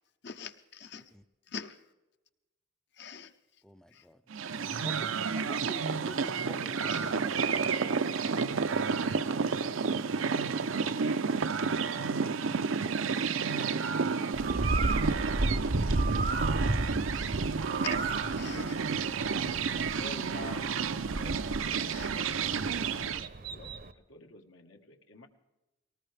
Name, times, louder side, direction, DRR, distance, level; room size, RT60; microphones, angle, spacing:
voice 1, 0.2-1.0 1.5-1.8 3.0-3.3 3.9-4.0 6.9-7.1 17.1-17.3 17.8-18.1 18.4-18.8 19.5-19.6 21.9-22.1, left 6 dB, 55° left, 9 dB, 0.9 m, -43 dB
voice 2, 3.6-4.2 4.8-7.5, equal, 5° left, 11 dB, 0.4 m, -47 dB
sound 1, 4.3-23.3, right 5 dB, 80° right, 0.6 m, -31 dB
Bird, 14.3-23.9, right 2 dB, 45° right, 0.7 m, -33 dB
voice 3, 19.9-22.1 22.7-25.3, left 3 dB, 80° left, 3 dB, 1.5 m, -49 dB
19.0 x 19.0 x 3.4 m, 1.0 s
head